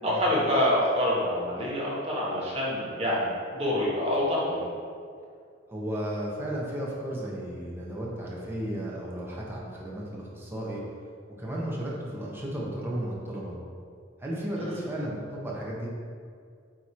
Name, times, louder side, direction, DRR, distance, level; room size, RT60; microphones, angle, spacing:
voice 1, 0.0-4.7 14.6-14.8, left 1 dB, 30° right, -6 dB, 1.5 m, -26 dB
voice 2, 5.7-10.8 11.4-13.5 14.2-15.9, right 1 dB, 10° right, -5 dB, 1.3 m, -34 dB
9.0 x 3.4 x 4.5 m, 2.2 s
head